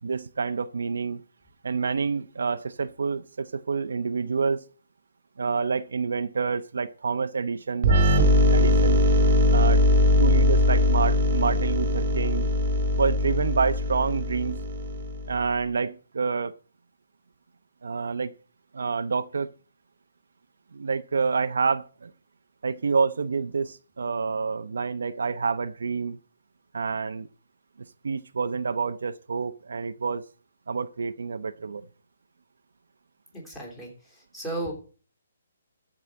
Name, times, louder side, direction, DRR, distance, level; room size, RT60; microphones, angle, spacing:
voice 1, 0.0-1.2 1.6-4.7 5.4-7.9 8.4-9.0 9.5-9.8 10.2-12.5 13.0-14.6 15.3-16.5 17.8-18.3 18.7-19.5 20.7-22.1 22.6-26.2 26.7-27.3 28.0-30.2 30.7-31.9, right 5 dB, 75° right, 0.8 m, -28 dB
sound 1, 7.8-15.4, left 1 dB, 30° right, 1.7 m, -21 dB
voice 2, 33.3-34.7, right 2 dB, 10° left, 3.2 m, -35 dB
14.0 x 4.9 x 7.5 m
hypercardioid pair, 175°, 0 cm